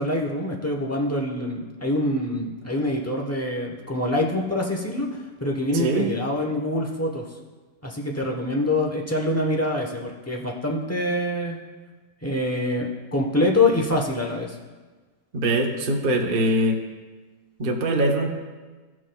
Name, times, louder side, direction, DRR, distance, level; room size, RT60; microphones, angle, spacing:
voice 1, 0.0-5.1 5.4-7.2 7.8-11.6 12.2-14.6, left 1 dB, 15° left, 0 dB, 0.5 m, -25 dB
voice 2, 5.7-6.1 15.3-16.8 17.6-18.3, right 1 dB, 40° right, 0 dB, 0.9 m, -22 dB
17.5 x 6.0 x 2.3 m, 1.3 s
omnidirectional pair, 1.9 m